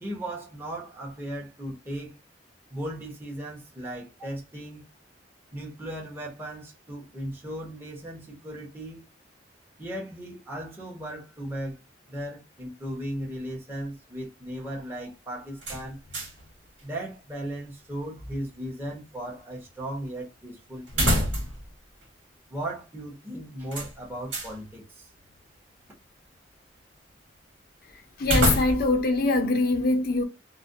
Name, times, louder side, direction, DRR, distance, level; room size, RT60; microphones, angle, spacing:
voice 1, 0.0-2.2 2.7-4.8 5.5-9.0 9.8-11.8 12.1-16.0 16.8-21.5 22.5-25.1, right 1 dB, 10° right, 0.8 m, -37 dB
sound 1, 15.6-16.5 16.8-16.9 20.9-21.7 22.0-22.1 23.7-24.6 28.2-29.1, equal, 85° right, 1.3 m, -27 dB
voice 2, 27.8-30.2, left 2 dB, 55° left, 0.5 m, -24 dB
2.4 x 2.1 x 2.6 m
head